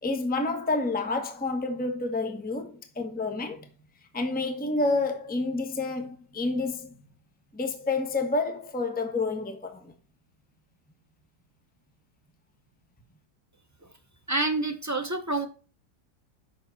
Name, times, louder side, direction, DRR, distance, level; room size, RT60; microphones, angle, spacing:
voice 1, 0.0-3.6 4.1-6.9 7.5-9.9, left 3 dB, 5° left, 1.0 m, -29 dB
voice 2, 14.3-15.5, right 2 dB, 25° right, 0.3 m, -27 dB
7.6 x 6.1 x 4.0 m
omnidirectional pair, 1.8 m